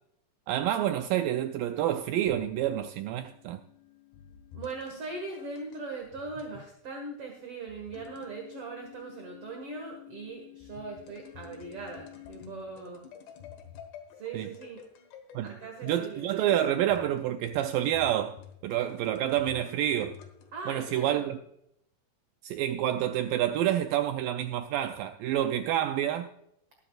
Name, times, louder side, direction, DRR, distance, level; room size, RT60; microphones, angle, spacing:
voice 1, 0.5-3.6 14.3-14.5 15.3-15.5 15.8-18.4 18.6-20.2 20.7-21.4 22.4-26.3, right 12 dB, 85° right, 2.0 m, -28 dB
sound 1, 1.8-6.7 7.7-20.6, left 9 dB, 85° left, 3.6 m, -50 dB
voice 2, 4.5-13.1 14.2-14.8 15.3-16.3 20.5-21.3, right 3 dB, 50° right, 2.0 m, -40 dB
20.5 x 9.9 x 2.4 m
omnidirectional pair, 4.6 m